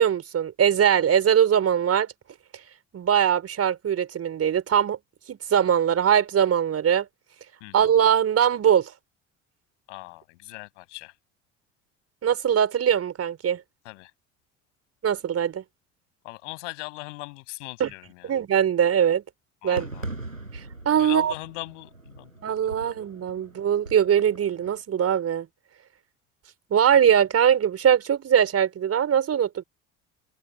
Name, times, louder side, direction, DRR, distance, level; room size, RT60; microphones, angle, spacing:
voice 1, 0.0-2.1 2.9-5.0 5.3-7.1 7.7-8.9 12.2-13.6 15.0-15.6 17.8-17.9 18.2-19.2 19.6-19.9 20.5-21.3 22.4-25.5 26.7-29.6, right 9 dB, 40° right, 4.9 m, -21 dB
voice 2, 7.6-7.9 9.9-11.1 13.8-14.1 16.2-18.3 19.6-20.1 21.0-22.9, left 23 dB, 65° left, 6.3 m, -40 dB
Fireworks, 19.8-24.8, right 2 dB, 85° right, 7.4 m, -41 dB
figure-of-eight pair, 55°, 38 cm